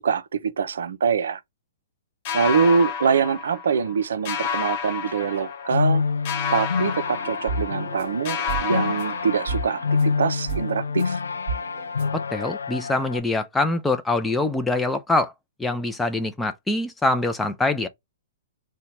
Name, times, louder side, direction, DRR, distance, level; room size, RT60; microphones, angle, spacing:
voice 1, 0.0-1.4 2.3-6.0 6.5-11.2, right 6 dB, 70° right, 0.5 m, -24 dB
sound 1, 2.3-4.0 4.3-5.9 6.3-8.0 8.3-9.9, left 7 dB, 40° left, 0.8 m, -30 dB
sound 2, 5.2-13.2, left 5 dB, 80° left, 0.3 m, -27 dB
sound 3, 7.1-12.1, right 4 dB, 50° right, 1.0 m, -34 dB
voice 2, 12.1-15.3 15.6-17.9, left 2 dB, 10° left, 0.4 m, -24 dB
2.8 x 2.2 x 4.1 m
hypercardioid pair, 120°, 0 cm